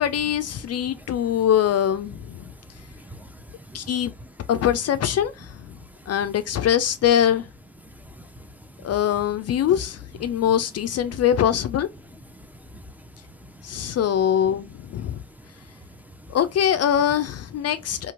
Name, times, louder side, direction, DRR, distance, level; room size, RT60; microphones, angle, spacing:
voice 1, 0.0-2.5 3.7-4.1 4.5-5.7 6.1-7.5 8.8-11.9 13.6-15.2 16.3-18.1, left 10 dB, 50° left, 0.4 m, -23 dB
voice 2, 2.4-3.9 5.7-5.8 7.8-8.5 8.8-8.9 12.4-14.0 15.1-15.2 15.7-16.4, equal, 5° right, 0.5 m, -45 dB
2.9 x 2.5 x 2.4 m
supercardioid pair, 50°, 33 cm